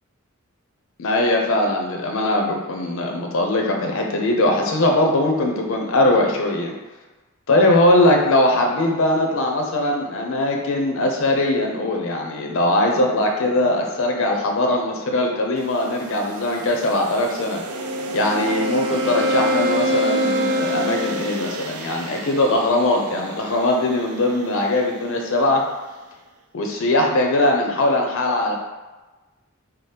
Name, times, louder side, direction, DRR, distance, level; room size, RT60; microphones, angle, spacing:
voice 1, 1.0-6.7 7.5-17.9 18.1-25.6 26.5-28.5, left 1 dB, 65° left, 2 dB, 0.6 m, -20 dB
sound 1, 15.6-25.9, right 3 dB, 85° right, 0.4 m, -34 dB
Wind instrument woodwind instrument, 17.5-21.8, left 1 dB, 55° right, 1.2 m, -24 dB
4.9 x 2.0 x 4.3 m, 1.2 s
head